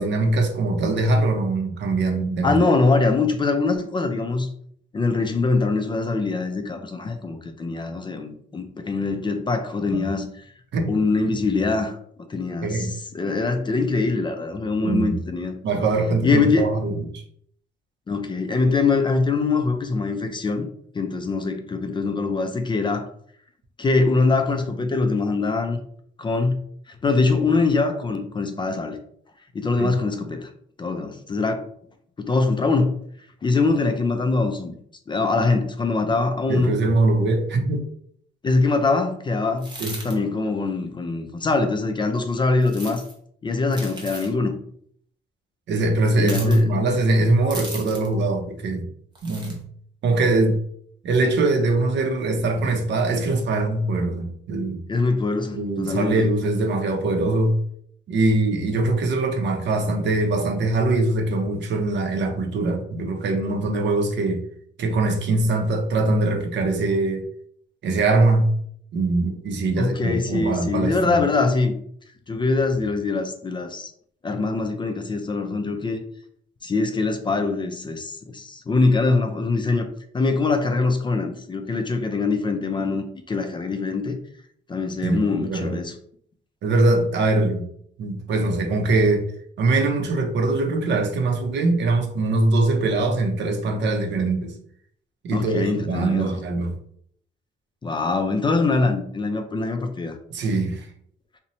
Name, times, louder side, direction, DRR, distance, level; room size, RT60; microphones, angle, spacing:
voice 1, 0.0-2.6 9.9-10.1 10.7-10.9 12.6-12.9 14.8-15.2 15.6-17.2 29.8-29.9 36.5-37.9 39.8-40.0 45.7-48.9 49.2-49.6 50.0-50.6 51.0-54.8 55.5-57.6 58.1-64.4 64.8-67.2 67.8-68.5 68.9-71.3 85.0-85.8 86.6-87.7 88.0-89.3 89.6-94.5 95.2-96.7 100.3-100.9, right 2 dB, 65° right, 0.5 m, -22 dB
voice 2, 2.4-4.5 4.9-10.4 10.9-12.0 12.3-15.5 16.2-16.7 18.1-20.7 20.9-23.1 23.8-25.8 26.2-26.6 26.9-29.0 29.5-30.5 30.8-31.6 32.2-32.9 33.4-34.7 35.1-36.7 38.4-39.7 40.0-43.0 43.4-44.6 46.1-46.7 54.9-56.3 69.8-71.7 72.3-73.9 74.2-76.0 76.6-79.9 80.1-84.2 84.7-85.9 95.3-96.3 97.8-100.2, left 3 dB, 25° left, 0.3 m, -23 dB
sound 1, 39.6-40.2 42.6-43.1 43.7-44.3 46.2-46.6 47.5-48.1 49.2-49.6, right 2 dB, 20° right, 0.8 m, -36 dB
2.6 x 2.1 x 2.8 m
cardioid pair, 90°, 20 cm